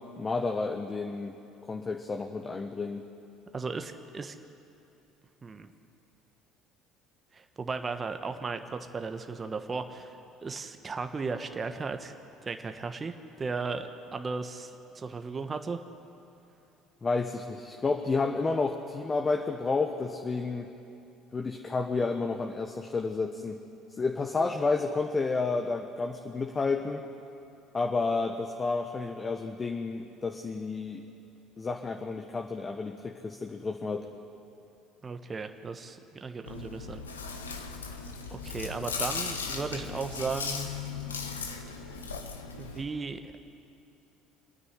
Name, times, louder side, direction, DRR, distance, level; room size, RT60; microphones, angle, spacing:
voice 1, 0.2-1.4 1.7-3.1 17.0-20.7 21.3-23.6 23.9-27.0 27.7-31.0 31.6-34.1, left 3 dB, 30° left, 4 dB, 1.3 m, -31 dB
voice 2, 3.5-4.3 5.4-5.7 7.3-12.1 12.4-15.8 35.0-37.0 37.3-37.5 38.3-40.7 42.6-43.4, right 4 dB, 30° right, 7 dB, 1.3 m, -36 dB
Chewing mastication, 36.5-42.8, left 5 dB, 90° left, 1.2 m, -37 dB
26.5 x 9.7 x 10.0 m, 2.8 s
hypercardioid pair, 60°, 0 cm